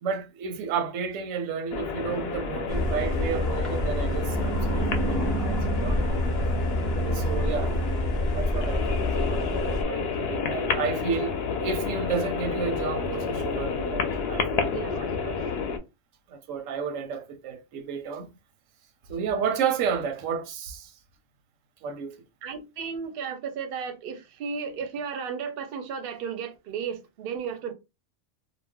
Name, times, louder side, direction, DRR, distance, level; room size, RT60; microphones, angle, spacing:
voice 1, 0.0-6.0 7.0-7.7 8.3-9.0 9.3-15.4 16.3-18.3 19.1-20.9 21.8-22.2, right 6 dB, 90° right, 1.0 m, -32 dB
sound 1, 1.7-15.8, left 5 dB, 65° left, 0.7 m, -30 dB
sound 2, 2.7-9.8, equal, ahead, 0.5 m, -27 dB
voice 2, 14.7-15.4 22.4-27.7, right 6 dB, 60° right, 0.6 m, -34 dB
2.4 x 2.0 x 3.4 m
omnidirectional pair, 1.3 m